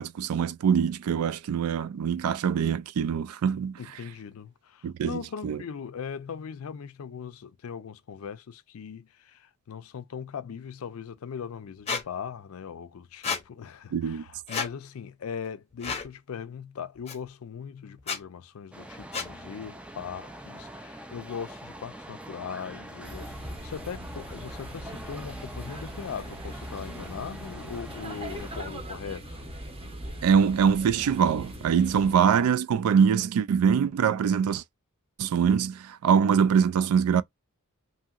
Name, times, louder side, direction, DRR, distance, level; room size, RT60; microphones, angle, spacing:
voice 1, 0.0-3.7 4.8-5.6 13.9-14.2 30.2-34.6 35.2-37.2, right 7 dB, 85° right, 0.3 m, -23 dB
voice 2, 3.8-29.5 31.9-32.1, left 7 dB, 70° left, 0.4 m, -39 dB
Squeak, 11.9-12.0 13.2-13.4 14.5-14.7 15.8-16.1 17.1-17.2 18.0-18.2 19.1-19.3, left 5 dB, 30° left, 0.6 m, -30 dB
sound 1, 18.7-28.6, right 1 dB, 5° right, 0.3 m, -44 dB
sound 2, 23.0-32.1, equal, 25° right, 0.7 m, -40 dB
2.8 x 2.8 x 2.4 m
head